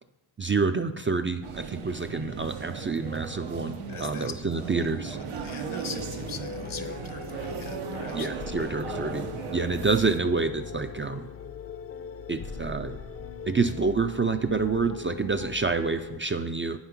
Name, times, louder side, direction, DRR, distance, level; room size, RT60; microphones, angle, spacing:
voice 1, 0.4-5.2 8.1-11.3 12.3-13.0 13.5-16.8, right 4 dB, 25° right, 7 dB, 0.3 m, -28 dB
sound 1, 1.4-10.2, right 5 dB, 85° right, 0.8 m, -37 dB
sound 2, 2.8-8.9, right 2 dB, 70° right, 1.2 m, -50 dB
voice 2, 3.9-8.8, left 6 dB, 75° left, 8 dB, 1.1 m, -43 dB
sound 3, 6.0-16.2, left 6 dB, 30° left, 0.5 m, -40 dB
8.6 x 5.6 x 5.9 m, 0.96 s
wide cardioid pair, 100°, 49 cm